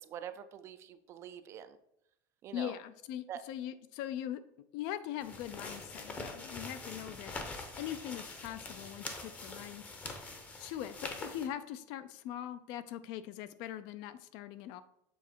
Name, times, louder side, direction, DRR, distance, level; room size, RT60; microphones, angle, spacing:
voice 1, 0.0-1.8 2.4-2.7 3.3-3.4, right 9 dB, 30° right, 11 dB, 0.3 m, -45 dB
voice 2, 2.5-4.4 4.7-7.3 7.7-14.8, left 11 dB, 50° left, 13 dB, 0.4 m, -41 dB
sound 1, 5.2-11.5, left 3 dB, 15° left, 0.7 m, -44 dB
7.1 x 4.0 x 4.5 m, 0.76 s
cardioid pair, 170°, 9 cm